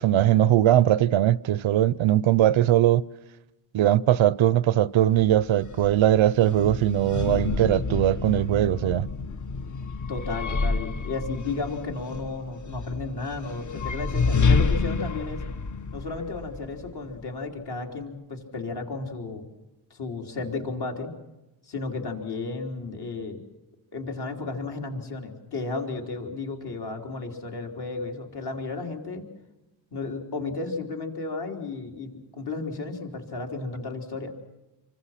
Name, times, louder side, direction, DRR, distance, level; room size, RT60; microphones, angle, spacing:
voice 1, 0.0-3.0 3.7-9.1, right 12 dB, 80° right, 0.7 m, -20 dB
sound 1, 5.1-17.2, left 4 dB, 40° left, 1.0 m, -29 dB
voice 2, 10.1-15.4 15.9-19.4 19.9-21.1 21.6-23.4 23.9-29.3 29.9-34.3, left 3 dB, 55° left, 3.8 m, -33 dB
27.5 x 24.5 x 5.9 m
wide cardioid pair, 120°, 46 cm